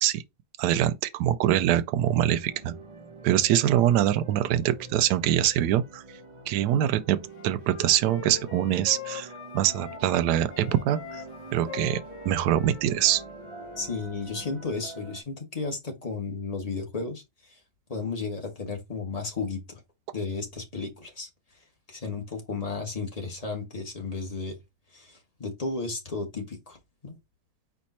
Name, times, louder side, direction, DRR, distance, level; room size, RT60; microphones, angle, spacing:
voice 1, 0.6-2.7 3.2-6.0 6.5-9.3 9.5-11.2 11.5-13.2, right 11 dB, 75° right, 1.1 m, -24 dB
sound 1, 2.2-15.2, right 3 dB, 55° right, 0.3 m, -46 dB
Wind instrument woodwind instrument, 7.3-10.2 10.5-14.0, left 9 dB, 55° left, 1.0 m, -43 dB
voice 2, 13.8-17.2 17.9-19.8 20.1-21.3 21.9-24.6 24.9-26.8 27.0-27.2, left 4 dB, 25° left, 1.3 m, -33 dB
4.5 x 2.8 x 4.2 m
omnidirectional pair, 1.8 m